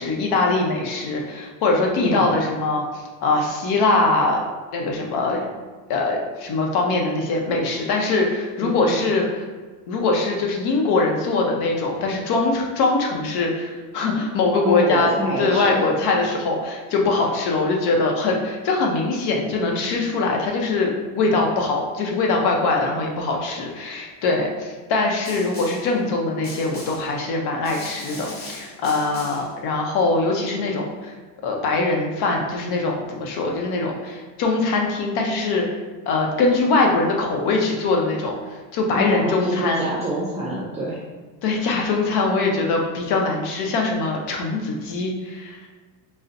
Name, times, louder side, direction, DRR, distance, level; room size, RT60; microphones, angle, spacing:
voice 1, 0.0-4.4 4.7-5.4 5.9-9.5 9.9-15.1 15.4-31.1 31.4-35.6 36.1-38.3 38.7-39.9 41.4-45.6, left 3 dB, 60° left, 1 dB, 0.8 m, -22 dB
voice 2, 2.0-2.4 8.6-9.1 14.6-15.8 38.9-41.0, right 1 dB, 15° right, -7 dB, 0.6 m, -26 dB
Snare drum, 25.2-25.9 26.4-27.1 27.6-29.5, left 1 dB, 20° left, 0.8 m, -38 dB
3.9 x 2.1 x 2.5 m, 1.4 s
supercardioid pair, 110°, 43 cm